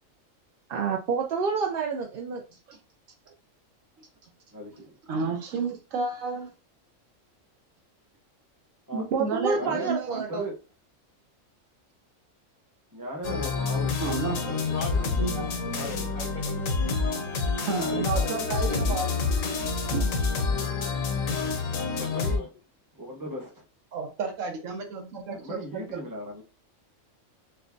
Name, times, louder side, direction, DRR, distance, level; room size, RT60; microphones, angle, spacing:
voice 1, 0.7-2.4 9.1-10.5, right 5 dB, 60° right, 0.6 m, -28 dB
voice 2, 4.5-4.9 8.9-9.0 9.5-10.5 12.9-14.3 15.6-16.0 17.5-18.4 22.0-22.4 23.0-23.5 25.3-26.4, equal, 20° right, 0.8 m, -37 dB
voice 3, 5.1-6.5 8.9-10.2 14.0-14.6 14.9-15.6 17.7-19.4 19.9-20.1 23.9-26.0, right 4 dB, 80° right, 1.3 m, -32 dB
sound 1, 13.2-22.4, left 4 dB, 85° left, 1.2 m, -28 dB
voice 4, 14.6-15.3 15.7-17.0 21.9-22.5, left 4 dB, 65° left, 0.5 m, -41 dB
6.5 x 2.2 x 2.6 m
omnidirectional pair, 1.4 m